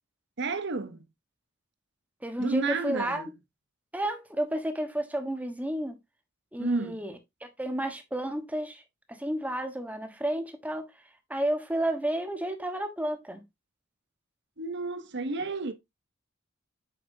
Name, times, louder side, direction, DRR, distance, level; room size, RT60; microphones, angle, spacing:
voice 1, 0.4-1.0 2.4-3.3 6.6-7.0 14.6-15.7, right 3 dB, 60° right, 0.9 m, -31 dB
voice 2, 2.2-3.2 3.9-6.0 6.5-7.1 7.6-8.8 9.1-10.9 11.3-13.4, right 1 dB, 10° right, 1.1 m, -31 dB
8.0 x 6.0 x 2.7 m
head